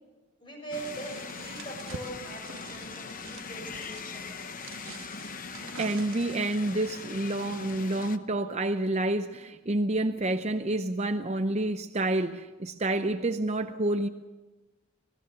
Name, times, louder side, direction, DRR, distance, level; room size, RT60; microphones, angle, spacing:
voice 1, 0.4-4.5, right 2 dB, 20° left, 1 dB, 7.2 m, -42 dB
sound 1, 0.7-8.2, left 5 dB, 40° left, 0.9 m, -41 dB
sound 2, 0.8-6.6, right 4 dB, 60° right, 1.2 m, -47 dB
voice 2, 5.8-14.1, right 2 dB, 30° right, 9 dB, 0.6 m, -28 dB
26.0 x 18.0 x 6.8 m, 1.2 s
head